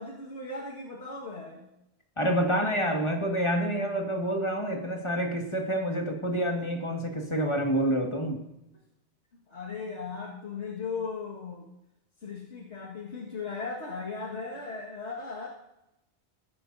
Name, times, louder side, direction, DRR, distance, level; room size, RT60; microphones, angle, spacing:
voice 1, 0.0-1.6 9.5-11.7 12.2-15.5, left 4 dB, 80° left, -5 dB, 2.0 m, -37 dB
voice 2, 2.2-8.4, equal, 25° left, 1 dB, 1.8 m, -28 dB
21.0 x 10.0 x 2.7 m, 0.88 s
omnidirectional pair, 1.1 m